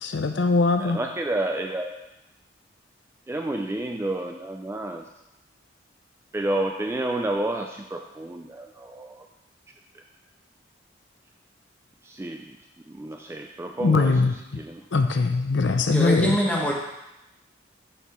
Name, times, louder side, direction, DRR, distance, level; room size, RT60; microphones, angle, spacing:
voice 1, 0.0-1.0 13.8-14.3 14.9-16.4, left 3 dB, 70° left, 7 dB, 0.5 m, -21 dB
voice 2, 0.8-1.9 3.3-5.1 6.3-9.3 12.0-12.6 12.9-14.8, right 1 dB, 15° right, 3 dB, 0.3 m, -30 dB
voice 3, 15.9-16.7, equal, 10° left, -3 dB, 1.4 m, -24 dB
6.6 x 4.5 x 6.1 m, 0.91 s
head